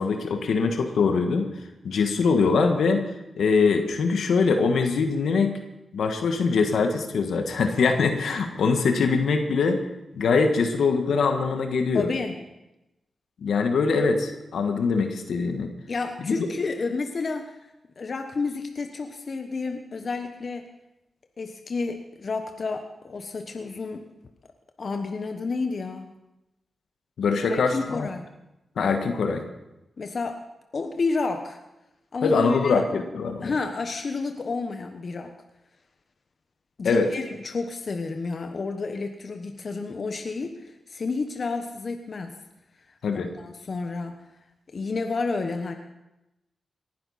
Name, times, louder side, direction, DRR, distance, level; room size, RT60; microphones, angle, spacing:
voice 1, 0.0-1.5 1.8-3.1 3.4-5.6 5.9-9.8 10.2-12.1 13.4-15.7 16.2-16.3 27.2-28.1 28.8-29.4 32.2-33.5 36.8-37.1 43.0-43.3, left 4 dB, 80° left, 5 dB, 1.5 m, -23 dB
voice 2, 11.9-12.3 15.9-17.5 18.0-20.6 21.4-24.1 24.8-26.1 27.5-28.3 30.0-30.4 30.7-31.6 32.1-32.8 33.4-35.3 36.8-42.3 43.1-44.2 44.7-45.7, left 4 dB, 60° left, 6 dB, 1.1 m, -30 dB
19.0 x 11.0 x 4.2 m, 0.95 s
supercardioid pair, 45°, 0 cm